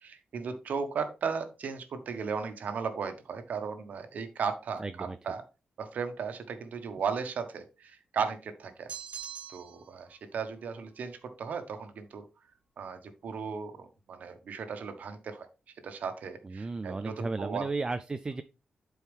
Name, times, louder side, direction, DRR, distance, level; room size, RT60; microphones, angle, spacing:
voice 1, 0.0-5.4 5.8-8.9 9.5-12.2 12.8-15.5 15.8-17.6, right 6 dB, 75° right, 8 dB, 1.4 m, -36 dB
voice 2, 4.8-5.2 16.4-18.4, right 3 dB, 25° right, 9 dB, 0.5 m, -34 dB
sound 1, 8.9-9.9, right 7 dB, 50° right, 1.1 m, -42 dB
11.5 x 4.7 x 3.5 m, 0.30 s
wide cardioid pair, 130°, 3 cm